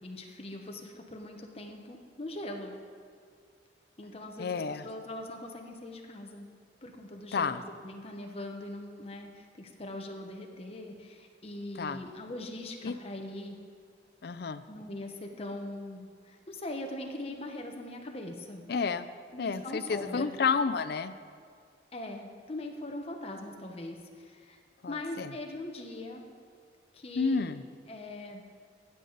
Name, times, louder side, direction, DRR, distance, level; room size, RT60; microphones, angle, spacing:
voice 1, 0.0-2.7 4.0-6.5 6.8-13.6 14.7-18.6 19.3-20.3 21.9-24.6 24.9-26.3 26.9-27.5 27.9-28.4, left 1 dB, 35° left, 2 dB, 1.0 m, -41 dB
voice 2, 4.4-4.8 7.3-7.6 11.8-12.0 12.8-13.0 14.2-14.6 18.7-19.1 19.4-21.1 24.8-25.3 27.2-27.6, left 5 dB, 60° left, 13 dB, 0.4 m, -30 dB
16.5 x 6.7 x 4.0 m, 2.1 s
head